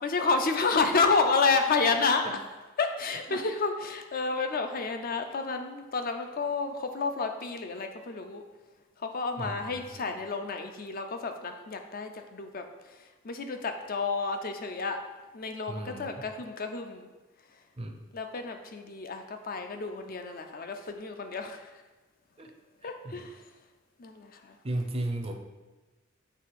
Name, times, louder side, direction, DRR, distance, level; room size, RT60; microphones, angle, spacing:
voice 1, 0.0-2.2 2.8-8.4 9.0-12.6 13.2-15.0 15.3-17.1 18.1-21.7 22.8-23.4 24.0-24.6, left 4 dB, 45° left, 6 dB, 0.5 m, -30 dB
voice 2, 9.4-10.0 15.7-16.3 17.8-18.0 22.4-22.5 22.8-23.3 24.6-25.3, right 1 dB, 30° right, 4 dB, 0.6 m, -35 dB
6.9 x 3.3 x 4.7 m, 1.2 s
head